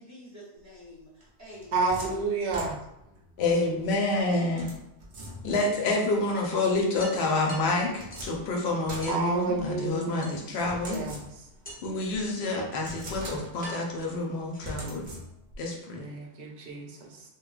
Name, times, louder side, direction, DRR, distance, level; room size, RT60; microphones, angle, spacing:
voice 1, 0.0-2.1, left 1 dB, 20° right, -7 dB, 0.7 m, -47 dB
sound 1, 1.2-3.2 4.6-5.8 7.4-9.9 10.7-11.7 12.1-12.2 12.7-13.8 14.6-15.6, right 1 dB, 55° right, 0.3 m, -42 dB
voice 2, 1.7-2.8 9.1-10.4 10.9-11.3 16.0-17.2, right 3 dB, 75° right, 0 dB, 0.8 m, -30 dB
sound 2, 3.0-4.0 5.5-5.6 6.0-6.1 6.4-6.5 7.0-8.4 9.0-9.3 10.2-10.8 11.6-12.1 12.9-13.0 13.6-15.0, equal, 10° left, 0.4 m, -45 dB
voice 3, 3.4-4.7 5.4-11.0 11.8-15.1 15.6-16.0, left 2 dB, 75° left, 0 dB, 0.8 m, -28 dB
3.1 x 2.0 x 2.3 m, 0.84 s
omnidirectional pair, 1.1 m